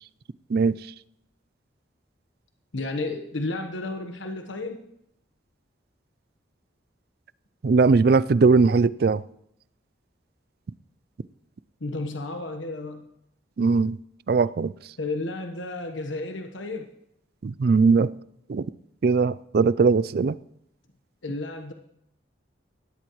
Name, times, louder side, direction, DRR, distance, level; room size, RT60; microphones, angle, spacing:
voice 1, 2.7-4.8 11.8-13.1 15.0-16.9 21.2-21.7, left 2 dB, 85° left, 4 dB, 1.2 m, -32 dB
voice 2, 7.6-9.2 13.6-14.0 14.3-14.7 17.4-18.1 18.5-18.7 19.0-20.4, right 4 dB, 55° right, 19 dB, 0.4 m, -20 dB
18.5 x 13.0 x 3.1 m, 0.77 s
head